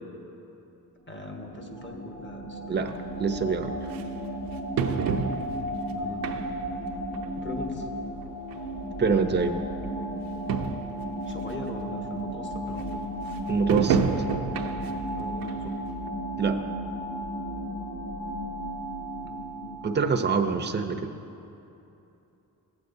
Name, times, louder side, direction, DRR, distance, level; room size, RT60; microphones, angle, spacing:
sound 1, 1.1-20.0, right 1 dB, 75° left, 2.2 m, -34 dB
voice 1, 1.1-2.8 5.8-6.3 7.3-7.9 11.3-13.0 15.2-15.8 19.2-19.9, left 2 dB, 30° left, 2 dB, 1.4 m, -40 dB
sound 2, 2.8-2.9 3.9-4.0 4.8-5.7 6.2-6.7 7.1-7.3 8.2-8.3 8.5-8.6 9.4-9.5 9.8-9.9 10.2-10.3 10.5-10.9 11.5-11.6 13.7-15.0 15.4-15.6 16.1-16.2, right 6 dB, 65° right, 0.7 m, -28 dB
voice 2, 3.2-3.7 9.0-9.6 13.5-14.0 16.4-16.7 19.8-21.2, right 5 dB, 30° right, 7 dB, 0.7 m, -25 dB
15.5 x 8.0 x 2.7 m, 2.9 s
cardioid pair, 60°, 37 cm